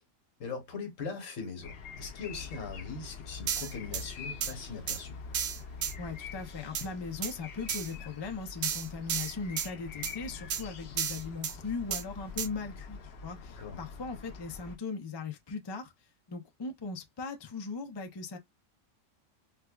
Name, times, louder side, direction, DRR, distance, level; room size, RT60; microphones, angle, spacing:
voice 1, 0.4-5.2 13.6-13.8, left 4 dB, 75° left, 1.4 m, -40 dB
sound 1, 1.6-14.8, left 5 dB, 55° left, 0.8 m, -45 dB
sound 2, 3.5-4.0 4.4-4.5 4.9-5.0 5.3-5.9 6.7-6.9 7.2-7.3 7.7-7.9 8.6-9.7 10.0-10.1 10.5-10.6 11.0-11.5 11.9-12.0 12.4-12.5, right 8 dB, 65° right, 0.7 m, -32 dB
voice 2, 5.9-15.9 16.3-18.4, left 4 dB, 35° left, 0.4 m, -39 dB
4.6 x 2.2 x 2.3 m
omnidirectional pair, 1.3 m